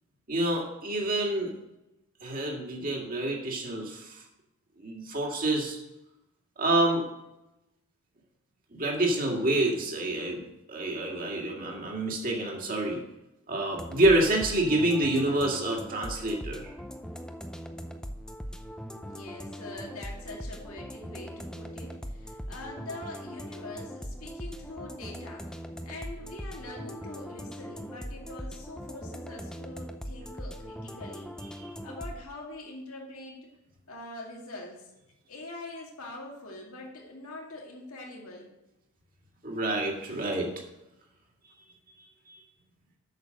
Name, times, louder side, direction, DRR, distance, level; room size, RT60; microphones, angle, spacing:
voice 1, 0.3-1.5 2.2-4.2 4.8-5.8 6.6-7.0 8.7-10.4 10.7-13.0 13.5-16.7 31.6-31.7 39.4-40.5 42.0-42.4, right 1 dB, 40° right, 0 dB, 2.0 m, -27 dB
sound 1, 13.7-32.2, equal, 5° left, 0.5 m, -40 dB
voice 2, 19.1-25.5 25.8-31.3 31.8-33.5 33.9-34.9 35.3-38.5, left 2 dB, 75° left, -1 dB, 2.2 m, -43 dB
8.3 x 6.7 x 6.5 m, 0.92 s
head